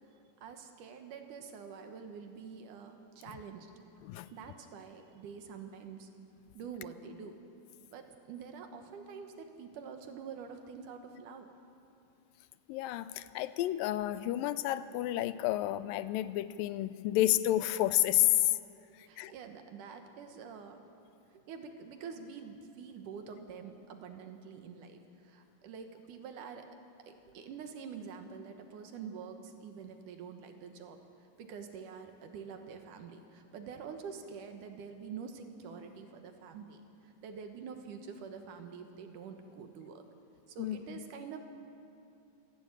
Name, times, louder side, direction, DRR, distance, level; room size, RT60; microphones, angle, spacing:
voice 1, 0.4-3.7 4.1-6.1 6.5-7.4 7.9-11.5 19.0-20.8 21.3-26.7 27.1-31.0 31.4-36.8 37.2-40.0 40.5-41.4, right 6 dB, 70° right, 6 dB, 2.7 m, -46 dB
voice 2, 12.7-18.5 19.2-19.3 40.6-41.0, left 14 dB, 90° left, 14 dB, 2.4 m, -30 dB
26.5 x 11.5 x 8.9 m, 2.6 s
omnidirectional pair, 3.9 m